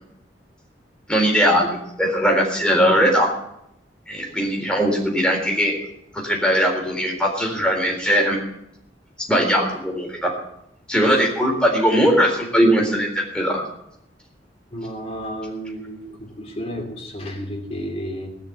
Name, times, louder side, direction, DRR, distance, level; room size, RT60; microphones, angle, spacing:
voice 1, 1.1-3.3 4.1-5.7 6.1-8.4 9.3-10.3 10.9-13.6, equal, 5° left, -1 dB, 3.9 m, -19 dB
voice 2, 14.7-18.3, equal, 35° left, 1 dB, 3.1 m, -32 dB
19.0 x 6.5 x 8.5 m, 0.79 s
head